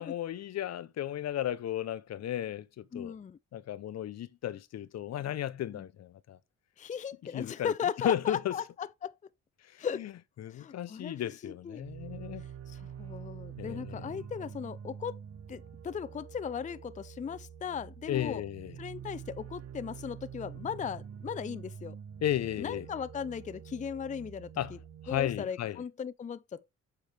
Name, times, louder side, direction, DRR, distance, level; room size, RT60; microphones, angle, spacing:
voice 1, 0.0-3.1 3.5-6.4 7.3-7.7 8.0-8.6 10.0-10.1 10.4-12.4 13.6-14.2 18.1-18.7 22.2-22.9 24.6-24.7 25.0-25.8, left 11 dB, 60° left, 0.7 m, -34 dB
voice 2, 2.9-3.4 5.7-5.9 6.8-9.1 9.8-10.1 10.5-11.8 12.7-15.2 15.5-18.4 18.8-21.9 22.6-24.5 25.1-26.7, left 7 dB, 25° left, 0.5 m, -37 dB
sound 1, 11.8-25.4, right 8 dB, 55° right, 1.3 m, -46 dB
7.9 x 5.9 x 3.4 m
cardioid pair, 90°, 30 cm